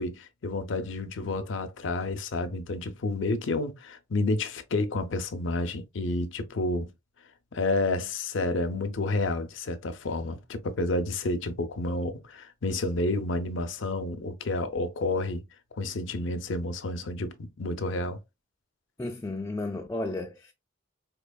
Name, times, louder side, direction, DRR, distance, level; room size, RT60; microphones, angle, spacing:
voice 1, 0.0-6.9 7.5-15.4 15.7-18.2, left 2 dB, 65° left, 0.5 m, -30 dB
voice 2, 19.0-20.5, left 2 dB, 15° left, 0.3 m, -33 dB
4.3 x 2.8 x 2.2 m
head